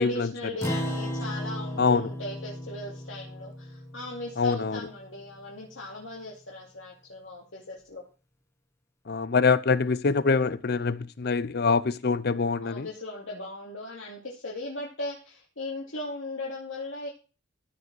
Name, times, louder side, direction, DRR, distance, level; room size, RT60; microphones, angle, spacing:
voice 1, 0.0-8.0 12.6-17.1, left 2 dB, 85° left, 2.8 m, -38 dB
Acoustic guitar, 0.6-5.3, equal, 15° left, 1.5 m, -35 dB
voice 2, 4.4-4.8 9.1-12.9, left 4 dB, 55° left, 0.6 m, -24 dB
15.0 x 5.1 x 6.2 m
head